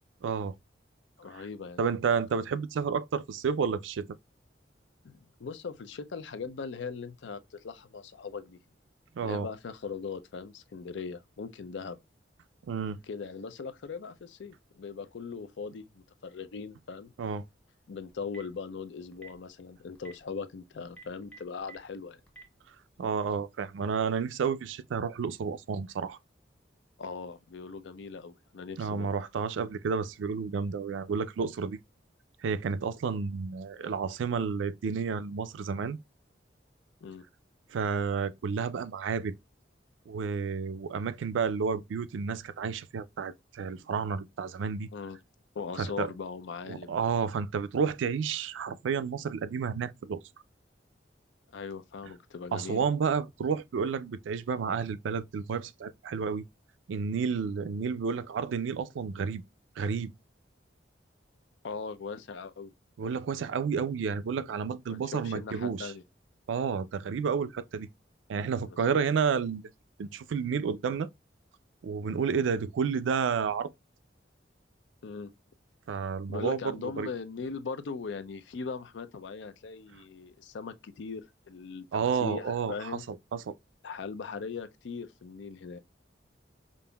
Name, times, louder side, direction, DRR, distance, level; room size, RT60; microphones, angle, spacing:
voice 1, 0.2-0.5 1.8-4.1 9.2-9.5 12.7-13.0 17.2-17.4 23.0-26.2 28.8-31.8 32.4-36.0 37.7-39.3 40.1-44.9 45.8-46.1 46.7-50.2 52.5-56.4 56.9-59.4 59.8-60.1 63.0-65.9 66.5-67.9 68.3-69.7 70.0-71.1 71.8-73.7 75.9-77.1 81.9-83.5, right 6 dB, 90° right, 0.4 m, -31 dB
voice 2, 1.2-1.8 5.0-8.6 9.2-12.0 13.1-17.1 17.9-22.2 27.0-29.1 37.0-37.2 44.9-45.2 45.6-46.9 51.5-52.9 61.6-62.7 64.9-66.0 68.6-69.0 75.0-75.3 76.3-83.0 83.8-85.8, left 5 dB, 75° left, 0.4 m, -40 dB
Telephone, 18.1-18.6 19.1-19.4 19.9-20.1 20.9-21.8 22.3-22.4, right 4 dB, 5° left, 0.9 m, -48 dB
5.2 x 2.5 x 2.2 m
head